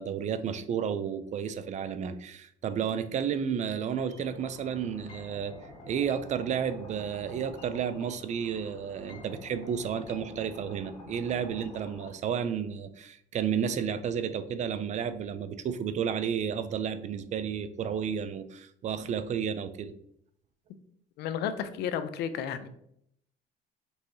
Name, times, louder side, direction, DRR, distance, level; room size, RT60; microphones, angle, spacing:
voice 1, 0.0-5.5 5.9-19.9, right 7 dB, 45° right, 12 dB, 0.4 m, -32 dB
sound 1, 4.1-12.1, left 2 dB, 40° left, 1.5 m, -48 dB
voice 2, 21.2-22.7, left 8 dB, 75° left, 11 dB, 0.5 m, -32 dB
5.3 x 3.0 x 2.7 m, 0.71 s
cardioid pair, 110°, 17 cm